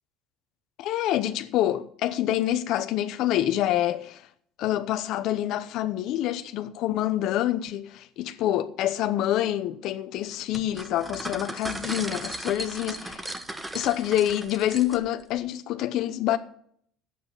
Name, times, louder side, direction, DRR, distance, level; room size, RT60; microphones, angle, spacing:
voice 1, 0.8-4.3 4.6-13.3 13.7-16.4, left 12 dB, 65° left, 0.8 m, -27 dB
sound 1, 10.5-15.2, right 1 dB, 10° right, 1.3 m, -37 dB
9.8 x 8.5 x 7.1 m
cardioid pair, 110°, 0 cm